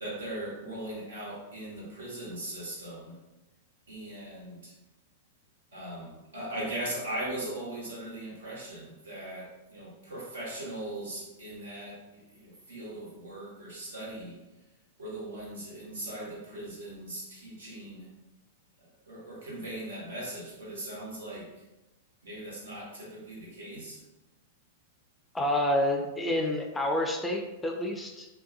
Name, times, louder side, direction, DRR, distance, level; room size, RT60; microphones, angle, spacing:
voice 1, 0.0-3.2 3.9-4.7 5.7-14.4 15.0-18.1 19.1-21.6 22.2-24.0, right 1 dB, 80° right, -5 dB, 1.1 m, -39 dB
voice 2, 25.3-28.3, left 1 dB, 10° left, 2 dB, 0.4 m, -28 dB
2.6 x 2.2 x 2.4 m, 1.0 s
hypercardioid pair, 105°, 0 cm